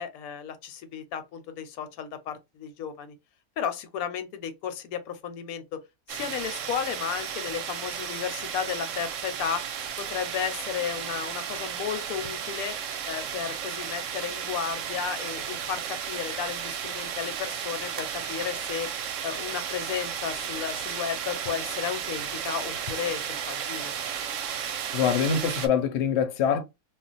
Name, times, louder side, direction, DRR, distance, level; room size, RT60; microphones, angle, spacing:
voice 1, 0.0-3.1 3.6-5.8 6.1-9.7 10.0-12.7 13.1-18.9 19.2-23.9, left 8 dB, 85° left, 1.0 m, -33 dB
sound 1, 6.1-25.7, right 8 dB, 70° right, 0.8 m, -34 dB
voice 2, 24.9-26.6, left 7 dB, 60° left, 0.8 m, -24 dB
2.4 x 2.0 x 3.9 m
omnidirectional pair, 1.5 m